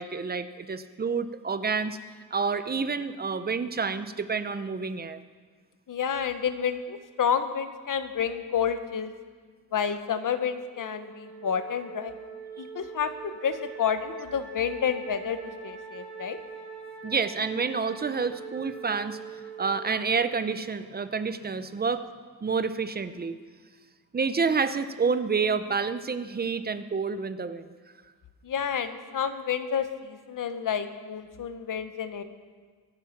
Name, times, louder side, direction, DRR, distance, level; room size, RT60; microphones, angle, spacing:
voice 1, 0.0-2.0 2.3-5.2 17.0-19.2 19.6-22.0 22.4-23.3 24.1-27.7, right 5 dB, 25° right, 11 dB, 0.6 m, -28 dB
voice 2, 5.9-9.1 9.7-12.1 12.6-16.4 28.4-32.2, left 7 dB, 50° left, 10 dB, 1.0 m, -30 dB
Wind instrument woodwind instrument, 10.7-21.1, right 6 dB, ahead, 3.4 m, -43 dB
24.0 x 9.4 x 5.9 m, 1.5 s
wide cardioid pair, 170°, 41 cm